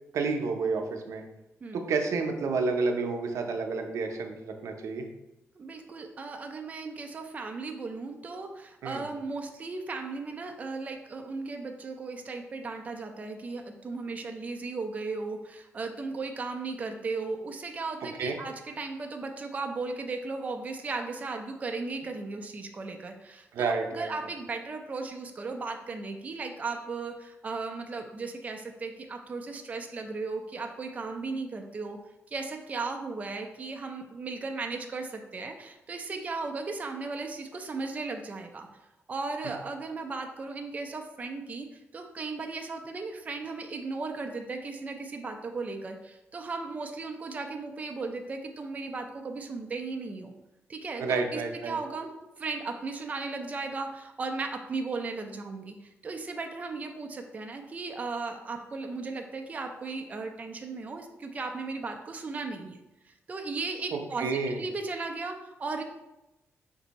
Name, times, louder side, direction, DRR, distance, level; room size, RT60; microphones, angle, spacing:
voice 1, 0.1-1.2 1.7-5.1 8.8-9.0 18.2-18.3 23.5-24.1 51.0-51.8 63.9-64.6, right 4 dB, 85° right, 4 dB, 0.6 m, -30 dB
voice 2, 5.6-32.0 32.3-38.7 39.1-50.3 50.7-52.1 52.4-62.8 63.1-65.8, right 3 dB, 30° right, 4 dB, 0.4 m, -36 dB
5.1 x 2.6 x 4.0 m, 0.96 s
wide cardioid pair, 150°, 5 cm